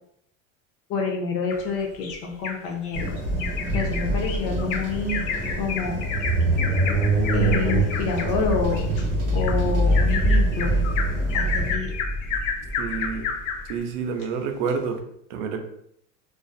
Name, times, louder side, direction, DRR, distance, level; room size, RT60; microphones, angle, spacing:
voice 1, 0.9-3.2 3.7-5.2 5.6-6.0 7.3-8.9 9.3-10.7 11.3-11.9, left 4 dB, 35° left, 1 dB, 0.4 m, -28 dB
Bird vocalization bird call bird song, 1.5-2.6 2.9-3.1 3.4-13.7 14.2-14.3 14.7-14.8, left 6 dB, 85° left, 0.6 m, -31 dB
sound 1, 2.9-11.7, equal, 40° right, 0.8 m, -29 dB
sound 2, 5.6-13.7, right 2 dB, ahead, 1.1 m, -24 dB
voice 2, 12.8-13.3 13.6-15.0 15.3-15.6, right 5 dB, 65° right, 5 dB, 0.5 m, -28 dB
2.6 x 2.4 x 2.3 m, 0.73 s
supercardioid pair, 145°, 38 cm